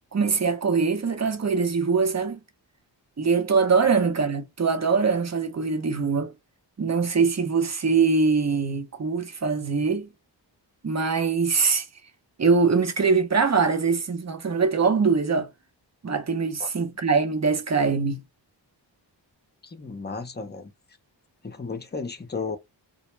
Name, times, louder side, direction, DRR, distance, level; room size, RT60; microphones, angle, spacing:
voice 1, 0.1-2.4 3.2-6.3 6.8-10.1 10.8-11.9 12.4-15.5 16.0-18.2, right 5 dB, 35° right, 0.7 m, -23 dB
voice 2, 19.6-20.7 21.4-22.6, left 4 dB, 25° left, 0.6 m, -34 dB
2.2 x 2.1 x 3.1 m
cardioid pair, 65°, 45 cm